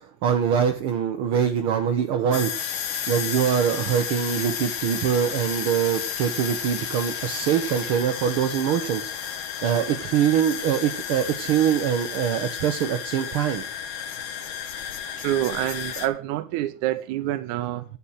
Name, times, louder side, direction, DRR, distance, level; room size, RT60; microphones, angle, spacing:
voice 1, 0.0-2.8 3.1-13.6, right 8 dB, 65° right, 1.4 m, -24 dB
sound 1, 2.3-16.1, left 8 dB, 60° left, 1.4 m, -32 dB
sound 2, 2.5-8.0, left 4 dB, 75° left, 4.2 m, -42 dB
voice 2, 15.2-17.9, right 14 dB, 85° right, 2.1 m, -27 dB
11.0 x 7.2 x 6.2 m
omnidirectional pair, 3.4 m